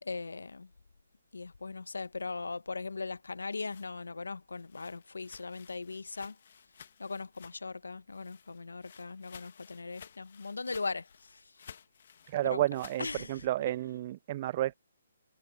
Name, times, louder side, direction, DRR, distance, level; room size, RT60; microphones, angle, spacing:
voice 1, 0.0-0.7 1.3-6.4 7.0-11.5 12.4-12.6 13.0-13.4, left 4 dB, 85° left, 1.2 m, -39 dB
sound 1, 3.5-7.8 8.1-13.1, left 7 dB, 55° left, 1.4 m, -55 dB
voice 2, 12.3-14.7, right 14 dB, 40° right, 0.3 m, -31 dB
hypercardioid pair, 145°, 0 cm